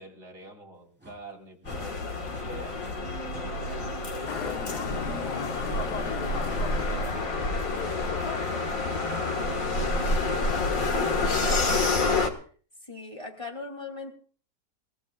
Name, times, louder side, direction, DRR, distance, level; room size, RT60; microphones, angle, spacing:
voice 1, 0.0-2.8 3.2-9.8 10.2-10.4, right 1 dB, 55° right, -1 dB, 4.5 m, -46 dB
sound 1, 1.0-1.2 1.6-1.8 2.3-2.4 2.8-2.9 3.3-3.5 3.7-3.9 4.2-4.4 4.7-4.9 5.6-5.8 6.5-6.7 7.4-7.5 8.4-8.6 9.1-9.3 9.7-9.9, right 1 dB, 5° right, 4.3 m, -49 dB
sound 2, 1.7-12.3, left 3 dB, 55° left, 2.1 m, -28 dB
Motorcycle, 4.3-9.3, left 7 dB, 75° left, 1.6 m, -36 dB
voice 2, 9.5-12.1 12.8-14.1, left 3 dB, 20° left, 2 dB, 3.2 m, -41 dB
28.5 x 16.0 x 2.4 m, 0.43 s
omnidirectional pair, 1.7 m